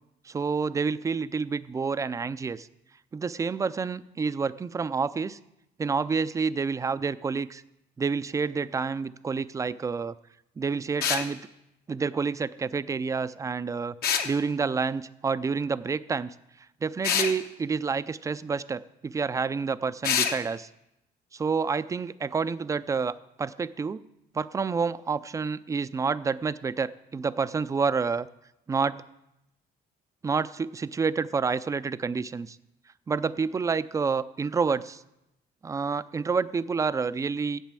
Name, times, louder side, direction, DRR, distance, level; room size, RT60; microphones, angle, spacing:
voice 1, 0.3-2.7 3.1-5.4 5.8-7.6 8.0-10.2 10.6-11.4 11.9-13.9 14.2-16.3 16.8-20.7 21.3-24.1 24.3-28.3 28.7-29.0 30.2-32.6 33.1-35.0 35.6-37.6, right 5 dB, 20° right, 16 dB, 0.4 m, -28 dB
sound 1, 11.0-11.3 14.0-14.3 17.0-17.3 20.0-20.4, left 8 dB, 65° left, 1.0 m, -25 dB
8.9 x 7.4 x 7.4 m, 0.88 s
cardioid pair, 110°, 17 cm